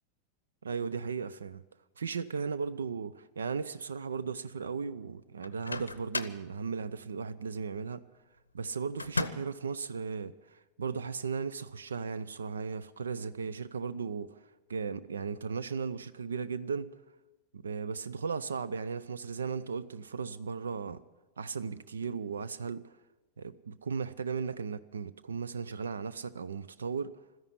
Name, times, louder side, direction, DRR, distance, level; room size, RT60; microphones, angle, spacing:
voice 1, 0.6-1.6 2.0-8.0 8.5-14.3 14.7-16.9 17.5-21.0 21.4-22.9 23.4-27.2, right 5 dB, 70° right, 0.5 m, -36 dB
Microwave oven, 5.4-6.5 9.0-9.6, left 2 dB, 80° left, 0.6 m, -35 dB
13.0 x 10.5 x 9.9 m
figure-of-eight pair, 90°, 0 cm